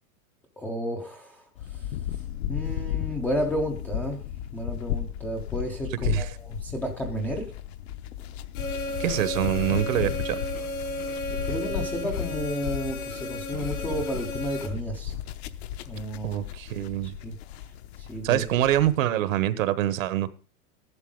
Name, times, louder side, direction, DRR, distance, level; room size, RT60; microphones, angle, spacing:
voice 1, 0.6-1.4 2.5-4.2 4.5-7.5 11.3-15.1 15.9-16.4 17.0-17.4 18.1-18.4, equal, 5° left, 0.5 m, -32 dB
sound 1, 1.6-19.0, left 11 dB, 50° left, 0.8 m, -35 dB
sound 2, 8.5-14.7, left 1 dB, 85° left, 6.4 m, -34 dB
voice 2, 9.0-10.4 16.2-17.1 18.2-20.3, right 13 dB, 65° right, 1.2 m, -25 dB
13.5 x 11.5 x 3.7 m
supercardioid pair, 165°, 42 cm